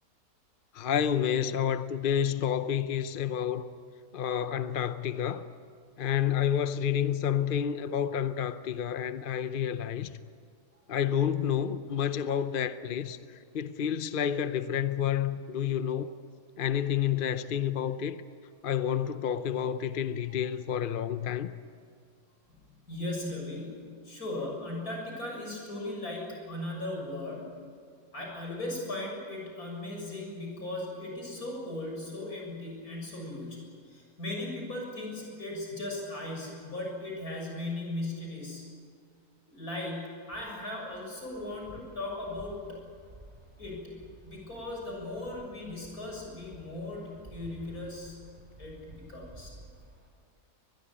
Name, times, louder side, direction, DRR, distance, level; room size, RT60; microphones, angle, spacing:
voice 1, 0.7-3.7 4.1-5.5 6.0-10.1 10.9-13.2 13.5-16.1 16.6-18.2 18.6-21.5, left 9 dB, 45° left, 0.7 m, -29 dB
voice 2, 22.9-27.6 28.1-33.6 33.9-38.6 39.5-42.7 43.6-43.9 44.2-48.2 48.6-49.5, left 1 dB, 65° left, 7.5 m, -37 dB
Wind, 40.3-50.1, right 1 dB, 25° right, 4.0 m, -53 dB
23.5 x 21.0 x 8.8 m
omnidirectional pair, 1.6 m